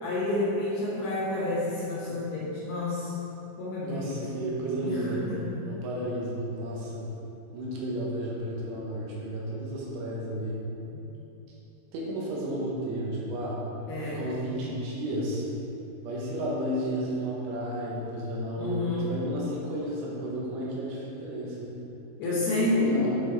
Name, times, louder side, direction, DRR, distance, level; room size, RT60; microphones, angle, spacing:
voice 1, 0.0-3.1 3.6-4.2 4.8-5.4 10.9-11.1 13.9-14.2 18.6-19.2 22.2-22.9, left 2 dB, 70° left, -8 dB, 2.7 m, -30 dB
voice 2, 3.8-5.2 5.6-7.0 7.5-10.6 11.9-13.6 14.0-15.4 16.0-21.7 22.2-23.2, right 1 dB, 80° right, -5 dB, 3.4 m, -32 dB
8.8 x 4.7 x 3.9 m, 2.9 s
omnidirectional pair, 5.6 m